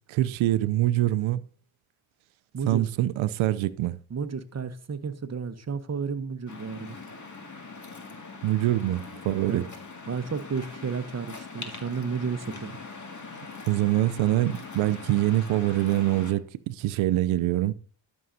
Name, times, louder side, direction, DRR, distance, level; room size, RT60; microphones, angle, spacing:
voice 1, 0.1-1.4 2.7-4.0 8.4-9.7 13.7-17.7, right 15 dB, 85° right, 0.6 m, -24 dB
voice 2, 4.1-7.0 9.5-9.6 10.1-12.7, right 6 dB, 35° right, 1.1 m, -32 dB
Waves surf, 6.5-16.3, left 4 dB, 40° left, 2.1 m, -42 dB
12.5 x 6.4 x 2.7 m
cardioid pair, 65°, 47 cm